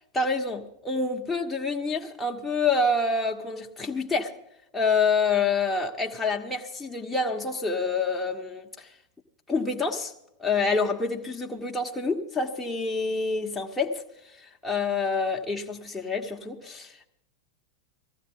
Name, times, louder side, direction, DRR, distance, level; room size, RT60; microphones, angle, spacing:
voice 1, 0.1-4.3 4.7-8.9 9.5-10.1 10.4-17.1, left 4 dB, 5° left, 1.3 m, -27 dB
19.0 x 15.0 x 3.9 m
figure-of-eight pair, 90°, 0 cm